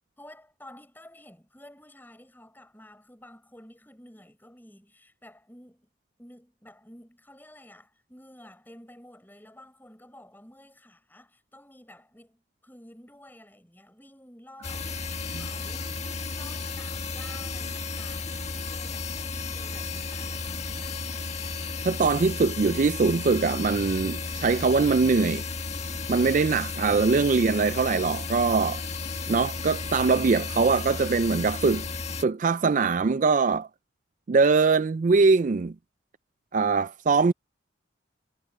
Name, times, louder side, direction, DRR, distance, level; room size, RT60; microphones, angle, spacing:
voice 1, 0.2-5.9 6.2-21.0, left 1 dB, 10° left, 6.3 m, -51 dB
sound 1, 14.6-32.2, left 4 dB, 35° left, 1.3 m, -33 dB
voice 2, 21.8-25.5 26.1-28.8 29.3-31.8 32.2-33.7 34.3-35.7 36.5-37.3, right 4 dB, 40° right, 0.4 m, -22 dB
head